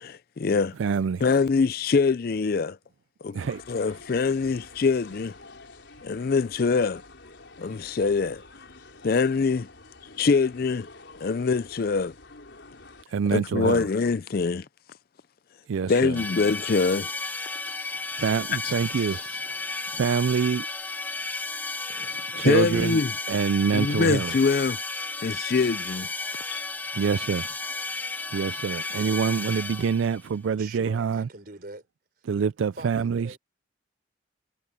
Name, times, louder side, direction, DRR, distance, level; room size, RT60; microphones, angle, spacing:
voice 1, 0.0-0.7 1.2-2.8 3.2-3.4 3.7-5.3 6.0-7.0 7.6-8.4 9.0-9.7 10.2-10.9 11.2-12.1 13.3-14.6 15.9-17.1 22.0-23.1 23.7-24.8 25.2-26.1 26.5-26.6, left 4 dB, 50° left, 0.4 m, -24 dB
voice 2, 0.8-1.2 3.3-3.9 13.1-13.9 15.7-16.2 18.1-19.6 19.9-20.7 22.3-23.0 23.3-24.3 26.9-27.5 28.3-31.3 32.3-33.4, right 6 dB, 75° right, 0.4 m, -26 dB
sound 1, 3.4-13.1, left 3 dB, 65° left, 4.9 m, -48 dB
sound 2, 16.2-30.3, left 3 dB, 10° left, 0.7 m, -33 dB
voice 3, 30.6-31.8 32.2-32.3 32.8-33.4, right 2 dB, 50° right, 4.3 m, -42 dB
head